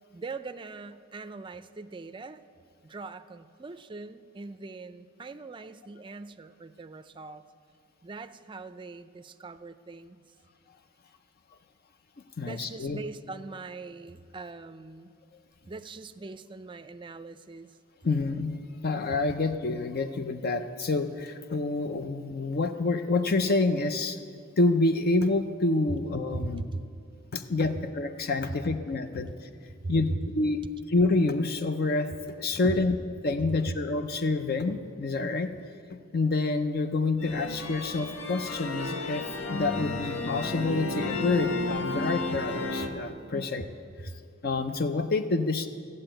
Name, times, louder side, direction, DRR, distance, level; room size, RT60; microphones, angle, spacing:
voice 1, 0.1-2.4 2.8-7.4 8.0-10.2 12.4-15.1 15.7-17.8 26.7-26.8 27.2-27.3 29.5-29.6 29.8-29.9 33.4-33.8 43.3-43.7 44.0-44.2, right 3 dB, 25° right, 10 dB, 0.4 m, -41 dB
voice 2, 12.4-13.0 18.0-18.6 18.8-24.2 24.6-26.6 27.3-29.3 29.9-30.6 30.9-33.0 33.2-35.5 36.1-43.6 44.4-45.7, left 3 dB, 50° left, 9 dB, 0.5 m, -27 dB
sound 1, 37.2-42.9, left 2 dB, 85° left, 1.1 m, -32 dB
14.5 x 7.7 x 8.9 m, 2.3 s
head